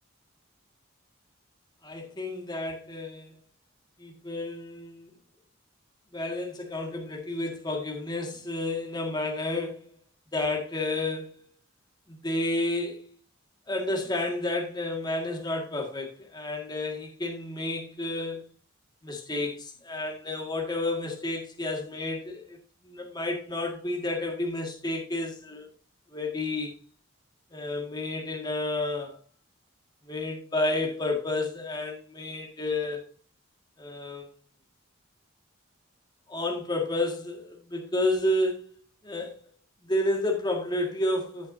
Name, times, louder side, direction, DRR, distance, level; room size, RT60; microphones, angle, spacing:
voice 1, 1.8-3.3 4.0-5.1 6.1-9.9 10.3-11.5 12.1-13.1 13.7-18.4 19.0-22.6 22.8-25.7 26.1-26.7 27.5-29.2 30.1-33.0 33.8-34.3 36.3-38.7 39.0-39.4 39.8-41.5, left 2 dB, 20° left, 1.8 m, -31 dB
15.5 x 6.1 x 2.7 m
head